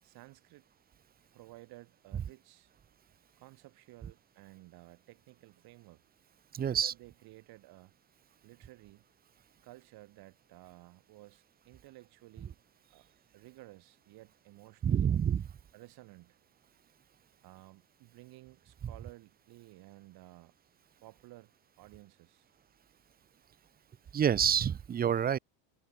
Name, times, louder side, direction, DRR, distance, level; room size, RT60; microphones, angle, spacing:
voice 1, 0.0-0.7 1.3-2.7 3.4-6.0 6.5-7.9 8.4-9.0 9.6-12.6 12.8-15.2 15.7-16.4 17.4-20.5 21.0-22.5, right 19 dB, 60° right, 6.1 m, -55 dB
voice 2, 6.5-6.9 14.8-15.4 24.1-25.4, right 8 dB, 20° right, 0.8 m, -27 dB
cardioid pair, 145°, 42 cm